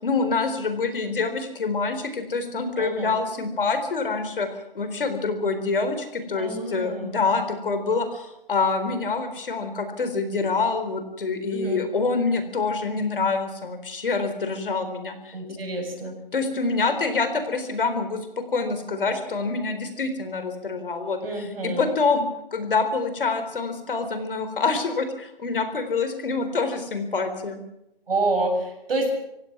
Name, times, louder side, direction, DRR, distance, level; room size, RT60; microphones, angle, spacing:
voice 1, 0.0-4.5 4.7-15.3 16.0-22.2 22.5-27.6, left 4 dB, 65° left, 8 dB, 4.1 m, -26 dB
voice 2, 2.8-3.2 6.3-7.2 11.5-11.8 15.3-16.2 21.2-21.9 28.1-29.1, right 2 dB, 75° right, 3 dB, 7.5 m, -28 dB
27.0 x 16.5 x 6.1 m, 0.85 s
hypercardioid pair, 170°, 29 cm